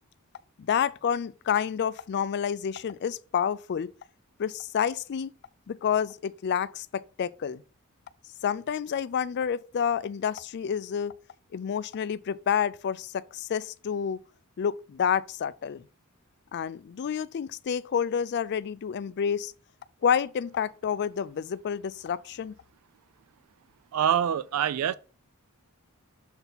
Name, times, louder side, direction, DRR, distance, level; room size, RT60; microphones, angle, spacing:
voice 1, 0.6-3.9 4.4-5.3 5.7-7.6 8.4-11.1 11.5-14.2 14.6-15.8 16.5-19.5 20.0-22.5, left 8 dB, 50° left, 0.3 m, -29 dB
voice 2, 23.9-24.9, right 9 dB, 85° right, 0.4 m, -25 dB
6.9 x 4.1 x 3.9 m
head